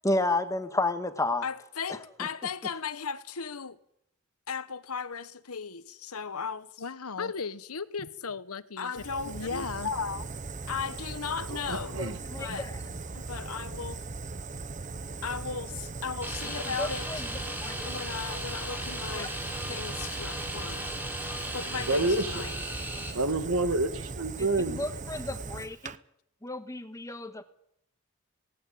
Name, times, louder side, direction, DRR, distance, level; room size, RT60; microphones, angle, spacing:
voice 1, 0.0-1.4 1.9-2.3 12.0-12.7 16.8-17.3 17.6-17.9 19.1-19.3 24.7-25.9 26.4-27.4, left 2 dB, 15° left, 1.6 m, -31 dB
voice 2, 1.4-3.8 4.5-10.3 10.7-12.0 12.4-14.0 15.2-17.1 17.8-20.9 21.5-22.5, left 5 dB, 80° left, 1.1 m, -36 dB
Fire, 9.0-26.0, right 3 dB, 35° right, 0.7 m, -39 dB
voice 3, 11.7-12.2 21.9-22.4 23.1-24.9, right 2 dB, 70° right, 2.0 m, -28 dB
sound 1, 16.2-23.1, equal, 10° right, 3.0 m, -37 dB
18.5 x 18.0 x 8.6 m
head